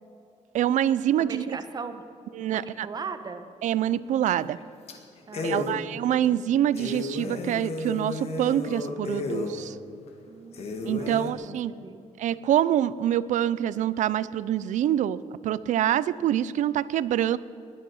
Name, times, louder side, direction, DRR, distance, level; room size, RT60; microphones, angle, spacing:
voice 1, 0.5-1.4 2.3-2.9 3.6-4.6 5.4-9.8 10.9-11.7 12.2-15.2 15.4-17.4, right 11 dB, 80° right, 18 dB, 0.5 m, -25 dB
voice 2, 1.2-2.0 2.4-3.5 5.3-5.9 6.3-6.5 10.3-10.7 11.0-12.0, right 5 dB, 35° right, 9 dB, 1.0 m, -39 dB
sound 1, 4.3-4.6 4.9-5.0 5.3-5.7 6.2-6.3 6.7-9.5 10.1-10.2 10.5-11.3, left 2 dB, 55° left, 1.8 m, -32 dB
19.0 x 11.5 x 6.3 m, 2.8 s
wide cardioid pair, 175°, 12 cm